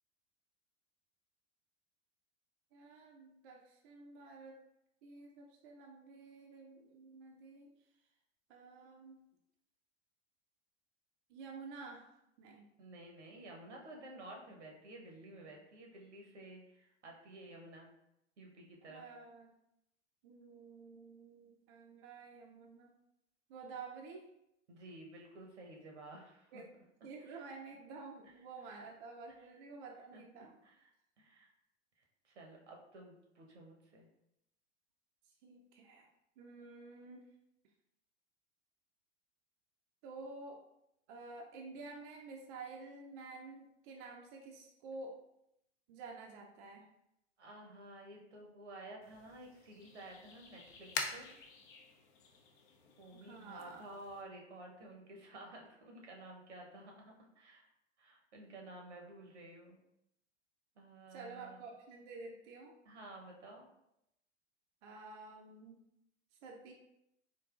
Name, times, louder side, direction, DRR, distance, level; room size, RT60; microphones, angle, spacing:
voice 1, 2.7-4.6 5.0-7.7 8.5-9.2 11.3-12.7 18.9-19.5 20.2-22.9 23.5-24.3 26.5-26.7 27.0-30.5 35.3-36.1 36.4-37.2 40.0-40.6 41.1-45.1 45.9-46.8 53.1-53.9 61.1-62.7 64.8-65.8 66.4-66.7, right 3 dB, 45° right, 1 dB, 0.5 m, -50 dB
voice 2, 12.8-17.9 18.4-19.0 24.7-26.5 27.2-27.4 30.1-30.2 30.6-30.9 31.2-31.5 32.0-34.1 47.4-51.3 53.0-57.7 58.0-59.8 60.8-61.6 62.9-63.7, right 1 dB, 75° right, 0 dB, 0.9 m, -52 dB
sound 1, 49.0-54.2, left 5 dB, 45° left, 0.5 m, -46 dB
3.8 x 2.5 x 2.4 m, 0.82 s
figure-of-eight pair, 90°, 35 cm